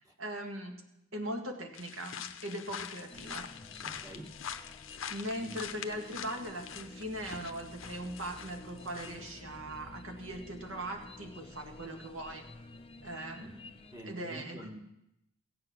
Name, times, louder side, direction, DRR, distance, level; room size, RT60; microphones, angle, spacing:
voice 1, 0.2-0.8 1.1-3.5 5.1-12.5 13.0-13.7 14.0-14.6, right 1 dB, 65° right, 3 dB, 1.9 m, -40 dB
sound 1, 1.7-9.4, left 8 dB, 65° left, 0.7 m, -45 dB
sound 2, 3.1-14.0, left 2 dB, 25° left, 0.6 m, -51 dB
voice 2, 3.8-4.4 5.4-5.6 13.4-13.5 13.9-14.8, right 1 dB, 15° right, 3 dB, 1.4 m, -46 dB
16.0 x 7.9 x 6.1 m, 0.84 s
head